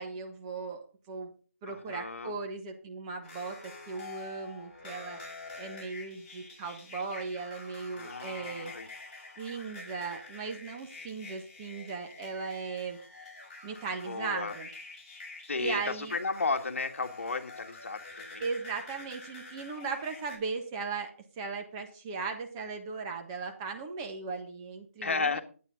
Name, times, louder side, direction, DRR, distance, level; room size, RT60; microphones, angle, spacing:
voice 1, 0.0-1.3 1.6-5.2 5.6-8.7 9.4-13.0 13.6-14.7 15.6-16.1 18.4-21.1 21.4-25.4, right 4 dB, 15° right, 3 dB, 1.5 m, -37 dB
voice 2, 1.7-2.3 7.9-8.9 14.1-14.5 15.5-18.4 25.0-25.4, left 4 dB, 65° left, 7 dB, 1.7 m, -33 dB
sound 1, 3.2-20.4, left 3 dB, 35° left, 6.0 m, -47 dB
12.0 x 9.2 x 3.8 m, 0.38 s
figure-of-eight pair, 165°, 8 cm